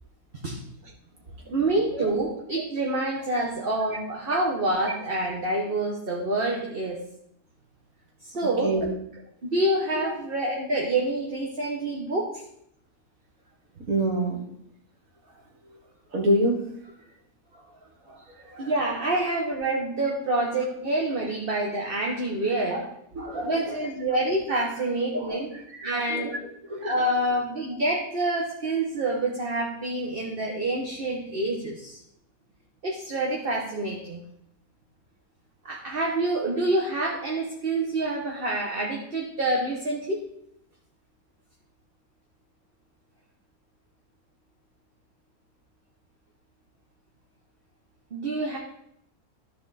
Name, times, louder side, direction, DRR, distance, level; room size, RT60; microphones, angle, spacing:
voice 1, 1.5-7.0 8.2-8.7 9.4-12.4 18.6-22.8 23.4-25.5 25.8-26.3 26.8-32.0 32.8-34.2 35.6-40.2 48.1-48.6, right 2 dB, 40° right, -1 dB, 1.5 m, -27 dB
voice 2, 13.9-14.4 16.1-16.6 18.1-18.7 22.7-22.9 23.1-23.7 25.1-25.4 25.7-27.1, right 1 dB, 65° right, 1 dB, 2.2 m, -28 dB
13.0 x 5.1 x 4.2 m, 0.72 s
omnidirectional pair, 1.6 m